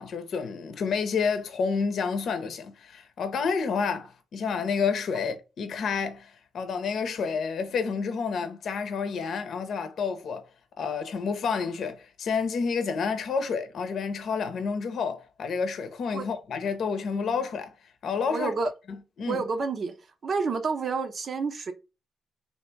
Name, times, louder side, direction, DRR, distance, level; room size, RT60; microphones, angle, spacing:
voice 1, 0.0-10.4 10.8-17.7 18.0-18.5 19.2-19.4, left 5 dB, 70° left, 0.7 m, -29 dB
voice 2, 18.3-18.7 19.3-19.9 20.2-21.7, right 4 dB, 60° right, 0.7 m, -29 dB
3.4 x 2.9 x 4.4 m
supercardioid pair, 50°, 0 cm